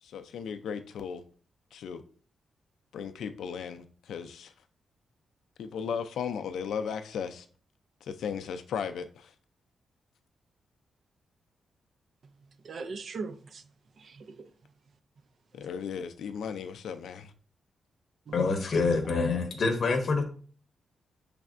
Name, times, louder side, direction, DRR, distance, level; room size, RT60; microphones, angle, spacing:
voice 1, 0.0-1.2 1.7-2.0 2.9-4.5 5.6-7.5 8.0-9.3 15.5-17.3, left 7 dB, 80° left, 0.3 m, -36 dB
voice 2, 12.2-13.7 14.0-14.5 18.3-18.4, right 4 dB, 45° right, 0.3 m, -41 dB
voice 3, 18.3-20.2, left 4 dB, 45° left, 0.8 m, -26 dB
6.1 x 3.3 x 2.4 m
wide cardioid pair, 160°, 0 cm